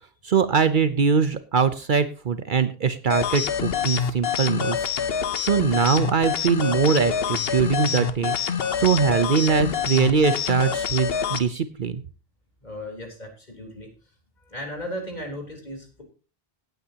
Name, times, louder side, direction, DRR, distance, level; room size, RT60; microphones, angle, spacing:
voice 1, 0.2-4.8 5.4-8.3 8.8-12.0, right 6 dB, 55° right, 12 dB, 0.8 m, -22 dB
sound 1, 3.1-11.4, left 7 dB, 70° left, 1.1 m, -26 dB
voice 2, 12.6-13.9 14.4-16.0, equal, 45° left, 1 dB, 3.9 m, -36 dB
17.5 x 9.2 x 2.9 m, 0.35 s
omnidirectional pair, 1.1 m